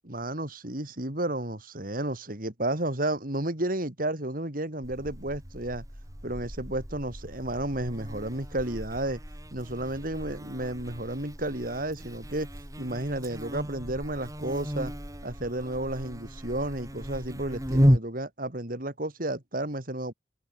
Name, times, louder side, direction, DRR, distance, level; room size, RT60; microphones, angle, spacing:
voice 1, 0.0-5.8 6.2-9.2 9.5-12.5 12.8-14.9 15.2-20.1, right 1 dB, 50° right, 3.3 m, -32 dB
Buzz, 4.8-18.0, equal, 20° right, 7.8 m, -33 dB
head